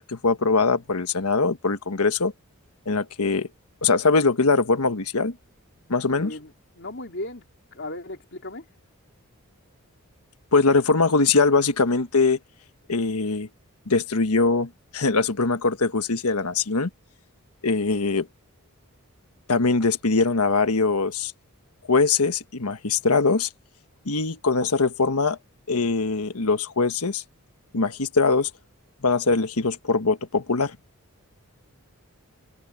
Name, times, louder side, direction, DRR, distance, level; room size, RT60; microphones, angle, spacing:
voice 1, 0.0-2.3 2.9-3.5 3.8-5.4 5.9-6.3 10.5-12.4 12.9-13.5 13.9-16.9 17.6-18.3 19.5-21.3 21.9-23.5 24.0-25.4 25.7-27.2 27.7-28.5 29.0-30.8, left 4 dB, 90° left, 1.4 m, -22 dB
voice 2, 6.2-6.5 6.8-7.5 7.7-8.6, left 1 dB, 55° left, 4.2 m, -36 dB
open air
head